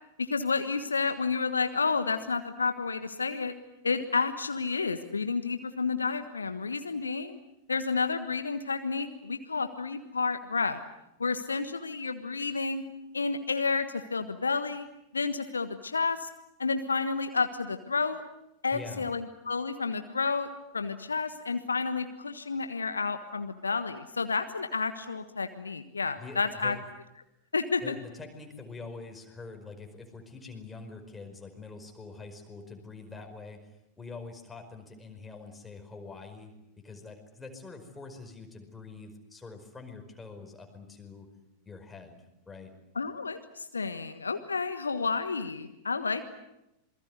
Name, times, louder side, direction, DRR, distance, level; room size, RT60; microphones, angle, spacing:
voice 1, 0.2-3.5 3.8-7.4 7.7-10.8 11.2-12.8 13.1-14.9 15.1-16.3 16.6-18.2 18.6-26.7 27.5-27.9 42.9-46.3, left 4 dB, 75° left, 9 dB, 1.4 m, -30 dB
voice 2, 18.7-19.1 26.1-26.9 27.8-36.5 36.8-41.3 41.6-42.7, left 4 dB, 10° left, 4 dB, 5.1 m, -45 dB
27.5 x 22.0 x 8.0 m, 0.87 s
figure-of-eight pair, 90°, 0 cm